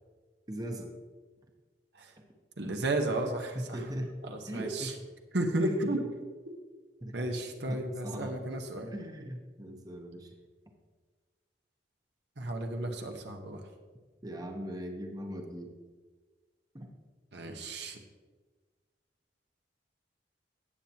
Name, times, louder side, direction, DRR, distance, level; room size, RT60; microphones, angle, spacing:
voice 1, 0.5-0.9 3.5-5.0 5.6-5.8 7.0-7.2 7.7-8.4 8.9-10.3 14.2-15.7 16.7-16.9, right 1 dB, 20° right, 3 dB, 1.0 m, -39 dB
voice 2, 2.6-3.9 4.2-4.9 5.3-6.0 6.5-6.6 7.1-8.9 12.4-13.7 17.3-18.0, right 1 dB, 75° right, 4 dB, 1.2 m, -33 dB
17.0 x 7.3 x 2.9 m, 1.4 s
head